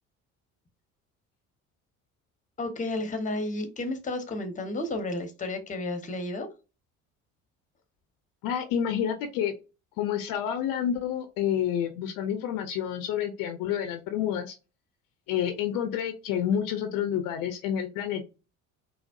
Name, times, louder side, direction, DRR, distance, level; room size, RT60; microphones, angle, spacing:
voice 1, 2.6-6.5, left 2 dB, 20° left, 7 dB, 0.8 m, -32 dB
voice 2, 8.4-9.5 10.0-14.6 15.3-18.2, left 9 dB, 55° left, 8 dB, 0.6 m, -29 dB
4.1 x 2.0 x 2.3 m, 0.31 s
figure-of-eight pair, 55°, 41 cm